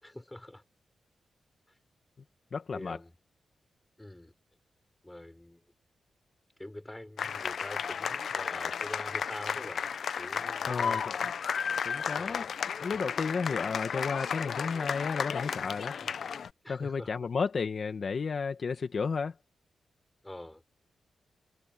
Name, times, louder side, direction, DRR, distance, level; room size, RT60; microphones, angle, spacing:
voice 1, 0.0-0.6 1.7-1.8 2.7-3.2 4.0-4.3 5.0-5.6 6.6-9.8 10.2-11.2 12.1-12.5 16.0-16.2 16.6-17.3 20.2-20.6, left 1 dB, 15° left, 4.4 m, -45 dB
voice 2, 2.5-3.0 10.7-11.0 11.8-12.4 12.8-15.9 16.7-19.3, left 5 dB, 55° left, 1.7 m, -32 dB
sound 1, 7.2-16.5, left 7 dB, 70° left, 0.7 m, -33 dB
cardioid pair, 70°, 0 cm